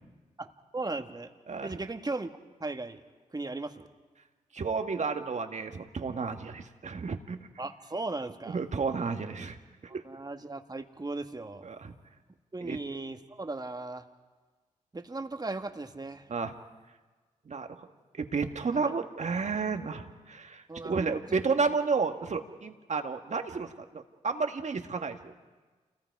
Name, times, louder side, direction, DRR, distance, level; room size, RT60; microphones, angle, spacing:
voice 1, 0.4-1.3 1.6-3.0 3.3-3.9 7.6-8.6 10.0-11.7 12.5-14.0 14.9-16.3 18.8-18.9 20.7-21.2, right 2 dB, 25° right, 6 dB, 1.7 m, -37 dB
voice 2, 4.5-7.5 8.5-10.0 11.6-11.9 12.6-12.8 16.3-16.5 17.5-17.9 18.1-25.3, right 4 dB, 55° right, 6 dB, 1.7 m, -32 dB
28.5 x 19.5 x 4.8 m, 1.3 s
supercardioid pair, 45°, 15 cm